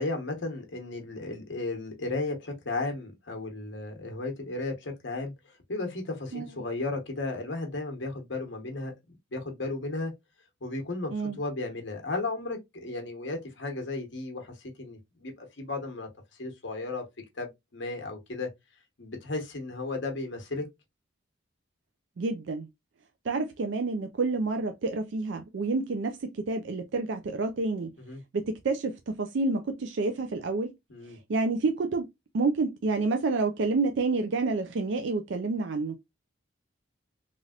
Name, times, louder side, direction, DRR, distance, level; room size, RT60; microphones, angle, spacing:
voice 1, 0.0-5.3 5.7-8.9 9.3-10.1 10.6-16.1 16.4-17.0 17.4-18.5 19.0-20.6 28.0-28.2 30.9-31.2, left 2 dB, 60° left, 1.0 m, -34 dB
voice 2, 22.2-22.7 23.3-27.9 28.3-30.7 31.3-32.1 32.3-36.0, right 3 dB, 65° right, 0.4 m, -29 dB
3.3 x 2.5 x 2.3 m
head